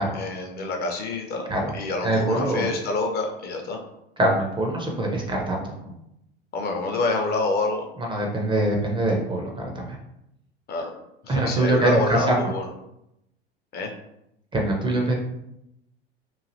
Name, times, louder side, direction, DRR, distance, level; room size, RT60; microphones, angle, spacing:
voice 1, 0.1-1.5 1.7-3.8 6.5-7.9 10.7-10.9 11.2-12.7 13.7-13.9, left 3 dB, 30° left, 2 dB, 0.5 m, -27 dB
voice 2, 2.0-2.7 4.2-5.9 8.0-10.0 11.3-12.5 14.5-15.1, right 1 dB, 15° right, 1 dB, 0.5 m, -23 dB
3.1 x 2.4 x 2.6 m, 0.82 s
figure-of-eight pair, 80°, 30 cm